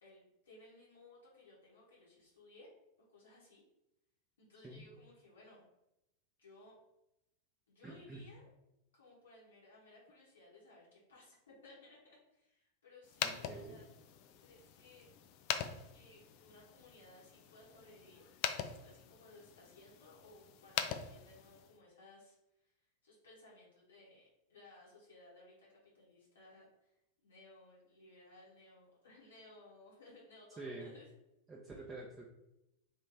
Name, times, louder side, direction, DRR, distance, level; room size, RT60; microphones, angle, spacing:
voice 1, 0.0-2.7 3.1-3.6 4.4-5.6 6.4-6.8 7.7-8.5 8.9-13.8 14.4-15.1 15.9-18.2 18.5-22.7 23.0-31.1, left 2 dB, 65° left, -6 dB, 1.3 m, -60 dB
voice 2, 7.8-8.2 13.2-13.8 30.6-30.9 31.5-32.3, right 2 dB, 15° right, -3 dB, 0.7 m, -47 dB
sound 1, 13.0-21.8, left 9 dB, 45° left, 0.4 m, -43 dB
3.2 x 3.1 x 4.0 m, 0.89 s
figure-of-eight pair, 90°, 0 cm